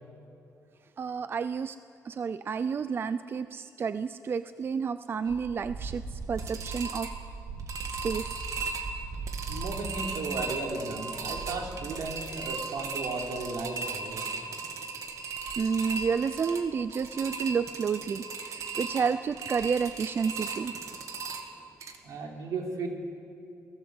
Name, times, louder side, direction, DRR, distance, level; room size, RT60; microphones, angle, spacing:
voice 1, 1.0-1.8 2.1-6.0 6.3-7.1 8.0-8.3 15.6-20.7, right 6 dB, 40° right, 13 dB, 0.5 m, -30 dB
sound 1, 5.2-22.0, right 4 dB, 65° right, 2.2 m, -37 dB
voice 2, 9.5-14.3 22.0-22.9, right 3 dB, 80° right, 2 dB, 3.5 m, -35 dB
29.5 x 19.0 x 8.0 m, 2.7 s
wide cardioid pair, 150°, 6 cm